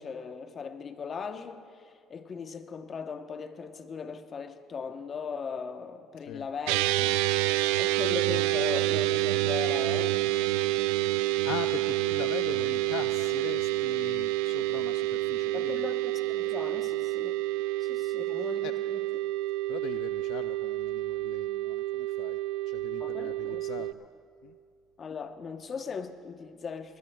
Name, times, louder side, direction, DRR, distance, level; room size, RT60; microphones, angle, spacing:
voice 1, 0.0-6.9 7.8-10.3 15.5-17.3 17.8-19.1 23.0-23.7 25.0-27.0, left 5 dB, 40° left, 0.9 m, -38 dB
voice 2, 6.2-6.5 6.9-7.1 11.3-15.9 18.2-18.8 19.7-22.4 22.7-24.1 24.4-24.6, left 12 dB, 75° left, 0.3 m, -41 dB
sound 1, 6.7-23.9, right 16 dB, 90° right, 0.3 m, -28 dB
22.0 x 19.5 x 2.3 m
supercardioid pair, 90°, 0 cm